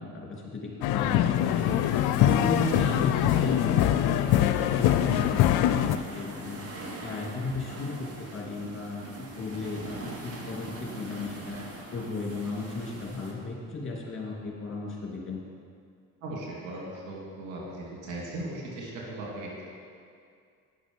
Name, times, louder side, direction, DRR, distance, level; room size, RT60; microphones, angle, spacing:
voice 1, 0.0-1.8 2.2-6.6 7.0-11.6 11.9-15.4, left 3 dB, 30° left, -2 dB, 2.6 m, -35 dB
sound 1, 0.8-6.0, left 11 dB, 70° left, 0.5 m, -23 dB
sound 2, 1.3-13.3, right 2 dB, 35° right, 1.7 m, -41 dB
voice 2, 16.2-19.6, right 1 dB, 85° right, -3 dB, 2.3 m, -38 dB
9.6 x 6.3 x 5.3 m, 2.3 s
supercardioid pair, 65°, 39 cm